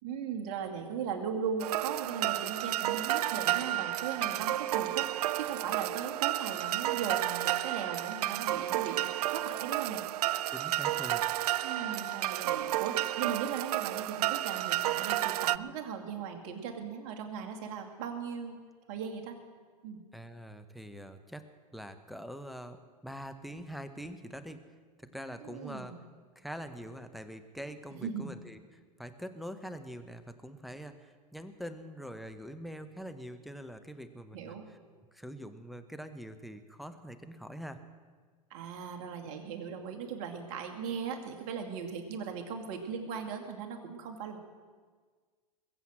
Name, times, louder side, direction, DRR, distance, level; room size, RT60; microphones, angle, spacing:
voice 1, 0.0-5.1 5.4-10.0 11.6-18.6 18.9-19.4 19.8-20.0 25.4-26.0 28.0-28.3 34.3-34.6 38.5-44.4, right 7 dB, 55° right, 3 dB, 2.3 m, -38 dB
sound 1, 1.6-15.6, right 14 dB, 70° right, 0.4 m, -31 dB
voice 2, 10.5-11.3 20.1-21.4 21.7-24.6 25.0-25.9 26.4-34.8 35.1-37.8, equal, ahead, 9 dB, 1.0 m, -44 dB
21.5 x 7.9 x 7.5 m, 1.5 s
hypercardioid pair, 110°, 20 cm